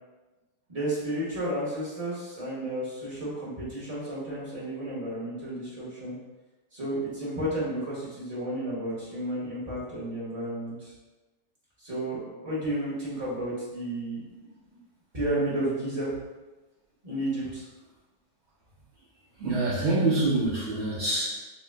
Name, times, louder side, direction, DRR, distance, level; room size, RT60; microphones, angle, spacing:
voice 1, 0.7-6.1 6.7-10.9 11.8-14.8 15.1-16.1 17.0-17.6, right 1 dB, 25° right, -8 dB, 0.9 m, -32 dB
voice 2, 19.4-21.4, right 2 dB, 75° right, -7 dB, 0.6 m, -26 dB
3.0 x 3.0 x 3.4 m, 1.1 s
omnidirectional pair, 2.3 m